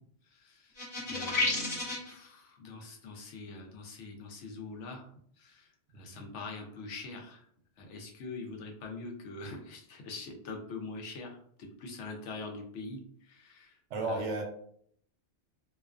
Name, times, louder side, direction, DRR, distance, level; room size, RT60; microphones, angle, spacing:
voice 1, 0.3-0.7 1.1-5.1 5.4-5.7 5.9-7.4 7.8-13.8 14.1-14.2, left 3 dB, 80° left, 2 dB, 0.9 m, -44 dB
sound 1, 0.8-2.1, left 2 dB, 40° left, 0.7 m, -31 dB
voice 2, 5.9-6.2 13.9-14.4, right 2 dB, 80° right, 2 dB, 0.9 m, -34 dB
2.4 x 2.3 x 2.3 m, 0.65 s
omnidirectional pair, 1.2 m